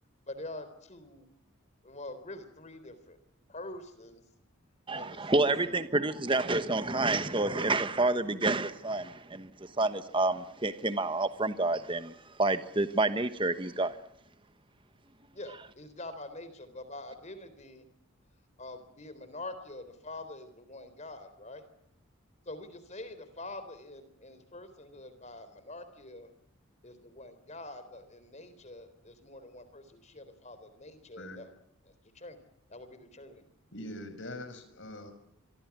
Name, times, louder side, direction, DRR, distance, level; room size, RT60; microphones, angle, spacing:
voice 1, 0.3-1.3 1.8-3.2 3.5-4.2 4.9-5.8 15.3-17.9 18.6-21.6 22.5-26.3 26.8-31.5 31.9-32.4 32.7-33.4, left 2 dB, 30° left, 3.8 m, -45 dB
voice 2, 4.9-14.0, right 2 dB, 25° right, 1.2 m, -29 dB
voice 3, 33.7-35.1, left 1 dB, 55° left, 5.4 m, -42 dB
26.5 x 25.0 x 6.1 m
head